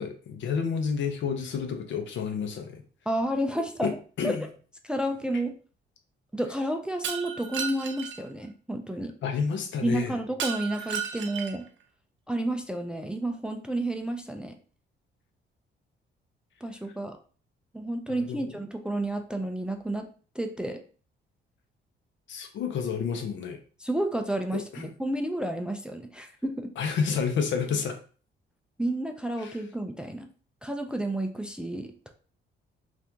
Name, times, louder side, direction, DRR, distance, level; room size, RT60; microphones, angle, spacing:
voice 1, 0.0-2.8 3.8-4.5 9.2-10.2 18.1-18.5 22.3-23.6 24.5-24.9 26.8-28.0 29.4-29.6, left 6 dB, 70° left, 5 dB, 0.7 m, -30 dB
voice 2, 3.1-4.0 4.2-4.4 4.8-5.5 6.3-9.2 9.8-11.6 12.3-14.6 16.6-17.2 17.7-20.1 20.4-20.8 23.8-26.7 28.8-30.3 30.6-32.1, right 1 dB, 5° right, 5 dB, 0.3 m, -31 dB
Shatter, 7.0-8.2 10.4-11.7, right 8 dB, 70° right, 0.5 m, -34 dB
2.8 x 2.5 x 3.4 m, 0.40 s
cardioid pair, 90°, 20 cm